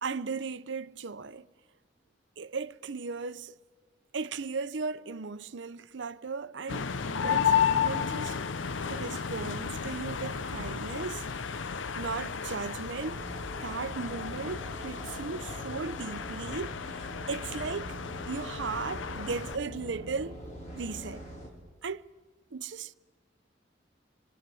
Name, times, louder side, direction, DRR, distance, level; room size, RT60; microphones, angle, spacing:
voice 1, 0.0-1.5 2.4-3.5 4.1-8.4 8.9-11.3 12.0-13.2 13.6-18.0 18.3-20.4 20.7-21.2 21.8-22.1 22.5-22.9, right 4 dB, 70° right, 0.7 m, -36 dB
sound 1, 6.7-19.6, left 7 dB, 80° left, 0.7 m, -33 dB
sound 2, 13.0-21.5, equal, 40° left, 4.3 m, -44 dB
27.5 x 22.5 x 7.7 m
head